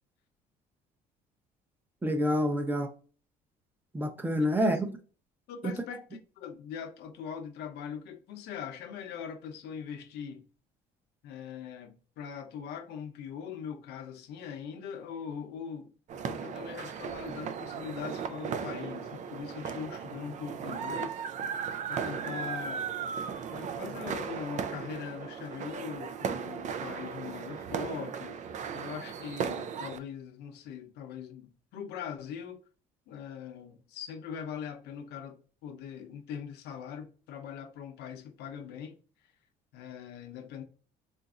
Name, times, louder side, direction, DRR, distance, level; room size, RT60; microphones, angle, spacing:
voice 1, 2.0-2.9 3.9-4.9, equal, 10° right, 0.6 m, -27 dB
voice 2, 4.4-4.7 5.5-6.0 6.4-10.4 11.2-15.9 16.3-21.2 21.6-22.9 23.5-32.6 33.1-39.0 39.7-40.6, left 7 dB, 80° left, 0.7 m, -41 dB
sound 1, 16.1-30.0, right 7 dB, 45° right, 0.4 m, -36 dB
3.9 x 2.5 x 2.3 m
cardioid pair, 110°, 17 cm